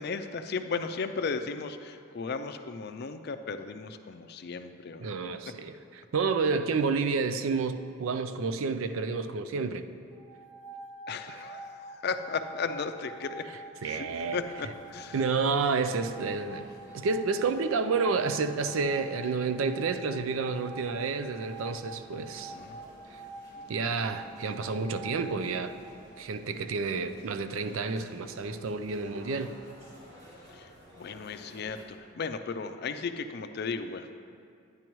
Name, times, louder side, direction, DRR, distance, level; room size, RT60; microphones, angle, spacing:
voice 1, 0.0-5.1 11.1-13.5 13.8-15.2 22.5-22.8 30.5-30.7 31.0-34.2, left 5 dB, 50° left, 9 dB, 0.4 m, -35 dB
voice 2, 5.0-9.8 11.3-11.4 13.8-14.4 15.1-16.7 16.9-22.5 23.1-23.2 23.7-25.8 26.2-29.6, right 4 dB, 85° right, 10 dB, 0.5 m, -30 dB
sound 1, 10.1-25.9, right 2 dB, 10° right, 0.7 m, -46 dB
sound 2, 14.1-31.8, equal, 35° right, 2.0 m, -54 dB
10.5 x 9.6 x 3.1 m, 2.4 s
head